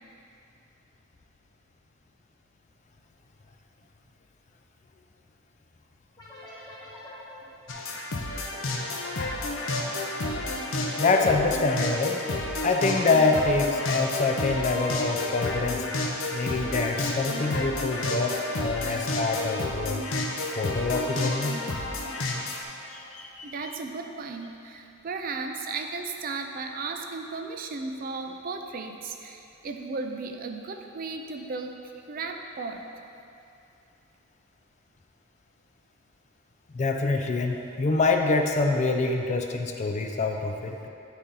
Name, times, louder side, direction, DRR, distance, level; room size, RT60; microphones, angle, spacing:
sound 1, 6.2-23.4, equal, 20° left, 1.0 m, -46 dB
sound 2, 7.7-22.6, left 2 dB, 65° left, 0.7 m, -31 dB
voice 1, 11.0-12.2 12.6-15.9 16.3-20.0 20.6-21.6 22.9-23.5 36.7-40.9, left 3 dB, 35° left, 4 dB, 0.4 m, -25 dB
voice 2, 23.4-31.8 32.1-32.8, right 4 dB, 40° right, 4 dB, 0.4 m, -35 dB
9.2 x 4.1 x 3.7 m, 2.7 s
head